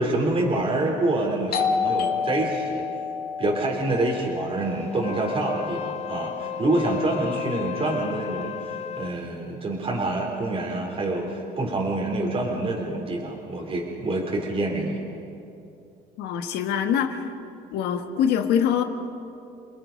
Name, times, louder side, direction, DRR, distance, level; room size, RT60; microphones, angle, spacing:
voice 1, 0.0-2.8 3.4-15.0, right 2 dB, 35° right, -2 dB, 3.6 m, -26 dB
Doorbell, 1.5-6.9, left 6 dB, 65° left, 2.0 m, -30 dB
Wind instrument woodwind instrument, 4.9-9.2, left 9 dB, 40° left, 0.7 m, -34 dB
voice 2, 16.2-17.3 17.7-18.8, left 8 dB, 90° left, 6 dB, 1.7 m, -24 dB
30.0 x 20.5 x 5.2 m, 2.7 s
cardioid pair, 110°, 17 cm